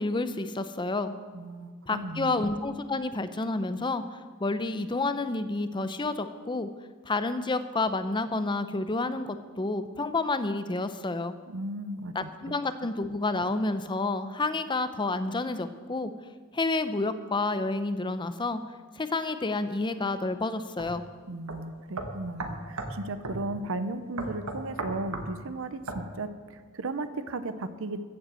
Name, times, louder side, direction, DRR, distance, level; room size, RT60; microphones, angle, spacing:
voice 1, 0.0-1.1 1.9-4.0 4.4-6.7 7.0-11.4 12.1-16.1 16.5-18.6 19.0-21.1, left 3 dB, 20° left, 11 dB, 0.6 m, -29 dB
voice 2, 1.3-2.4 11.5-12.3 21.3-28.0, right 2 dB, 65° right, 11 dB, 0.7 m, -35 dB
sound 1, 20.8-20.9 21.5-21.6 22.0-23.0 23.2-23.4 24.2-25.3 25.9-26.0, right 2 dB, 80° right, 1.5 m, -35 dB
14.5 x 7.9 x 7.6 m, 1.5 s
head